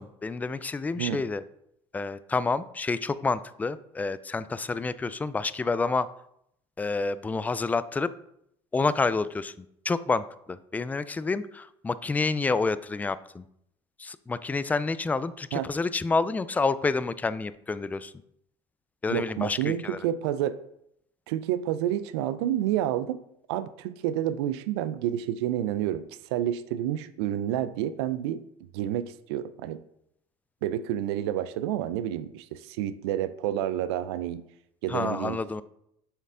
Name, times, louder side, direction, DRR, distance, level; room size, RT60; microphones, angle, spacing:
voice 1, 0.0-1.4 1.9-6.1 6.8-8.1 8.7-13.4 14.0-18.1 19.0-20.0 34.9-35.6, left 4 dB, 10° left, 15 dB, 0.3 m, -29 dB
voice 2, 19.1-20.6 21.3-23.2 23.5-26.0 26.3-28.4 28.7-29.8 30.6-34.4 34.8-35.4, right 11 dB, 85° right, 14 dB, 0.4 m, -29 dB
6.5 x 4.5 x 3.7 m, 0.74 s
supercardioid pair, 90°, 14 cm